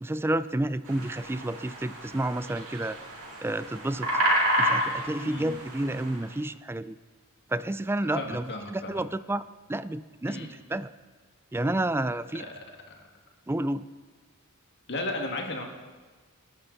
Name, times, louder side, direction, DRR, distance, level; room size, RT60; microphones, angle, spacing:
voice 1, 0.0-3.0 3.4-4.1 4.6-7.0 7.5-10.9 11.5-12.5 13.5-13.9, right 1 dB, 10° right, 15 dB, 0.4 m, -30 dB
sound 1, 0.9-6.2, equal, 75° right, 4.3 m, -30 dB
voice 2, 5.2-5.6 8.1-9.0 10.3-10.5 12.4-12.5 12.9-13.0 14.9-15.6, left 2 dB, 55° left, 2 dB, 2.0 m, -35 dB
28.0 x 11.5 x 4.0 m, 1.4 s
head